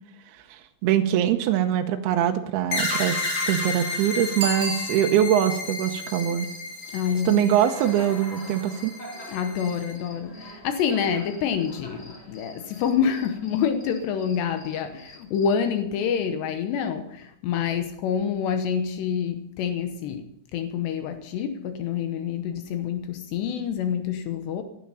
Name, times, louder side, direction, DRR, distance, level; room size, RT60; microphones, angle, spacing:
voice 1, 0.5-6.5 7.3-8.9, right 10 dB, 75° right, 5 dB, 2.6 m, -23 dB
sound 1, 2.7-9.9, left 3 dB, 55° left, 6.2 m, -32 dB
Bicycle bell, 4.4-5.5 11.0-11.1, right 1 dB, 20° right, 4.7 m, -32 dB
Cricket, 5.6-15.6, equal, 20° left, 2.1 m, -46 dB
voice 2, 6.9-7.5 9.3-24.6, left 7 dB, 75° left, 8 dB, 3.0 m, -27 dB
16.5 x 11.5 x 5.6 m, 0.76 s
omnidirectional pair, 5.1 m